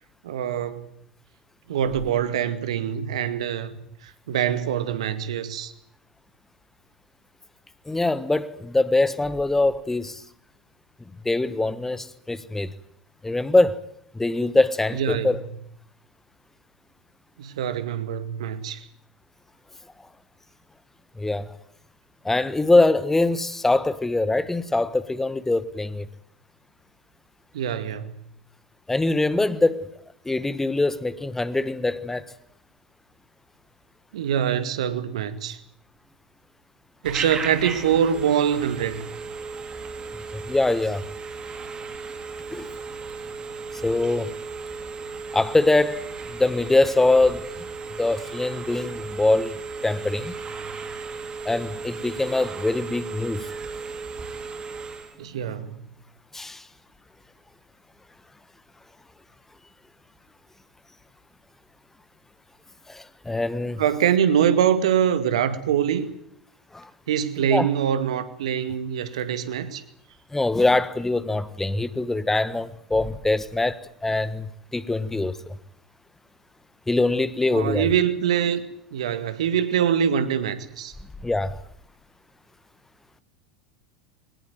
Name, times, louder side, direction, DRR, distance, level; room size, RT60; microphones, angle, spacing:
voice 1, 0.2-0.9 1.7-3.7 4.3-5.7 14.9-15.3 17.4-18.8 27.5-28.2 34.1-35.6 37.0-39.1 55.2-55.7 63.8-66.1 67.1-69.8 77.5-78.6 78.9-80.9, right 9 dB, 70° right, 2.1 m, -24 dB
voice 2, 7.9-10.2 11.2-12.7 13.2-13.8 14.1-15.4 21.2-21.5 22.2-26.1 28.9-29.9 30.2-32.2 40.3-41.0 42.5-42.7 43.8-44.3 45.3-46.0 46.3-47.6 48.0-49.6 49.8-50.3 51.4-53.5 56.3-56.7 62.9-63.8 66.7-66.9 67.5-67.7 70.3-75.4 76.9-77.9 81.2-81.6, left 2 dB, 10° left, 1.4 m, -23 dB
Telephone, 37.0-55.1, right 4 dB, 25° right, 4.3 m, -35 dB
23.0 x 19.5 x 9.3 m
figure-of-eight pair, 80°, 4 cm